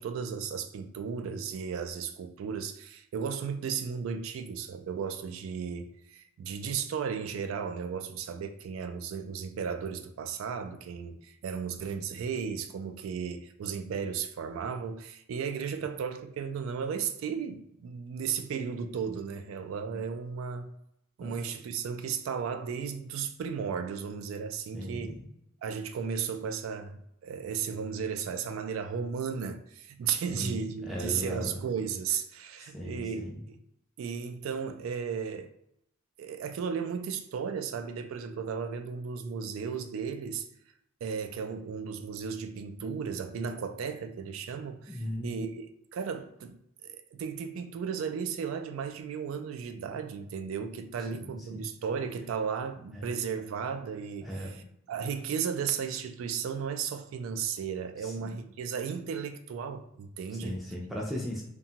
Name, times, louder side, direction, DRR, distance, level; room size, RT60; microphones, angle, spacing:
voice 1, 0.0-20.7 21.2-25.1 25.6-33.3 34.0-35.5 36.2-40.5 41.0-45.7 45.9-60.6, right 6 dB, 85° right, 0.3 m, -35 dB
voice 2, 24.7-25.2 30.3-31.6 32.6-33.4 44.9-45.4 51.1-51.6 52.9-53.0 54.2-54.6 58.0-58.4 60.4-61.4, equal, ahead, 0.4 m, -37 dB
2.8 x 2.2 x 2.7 m
head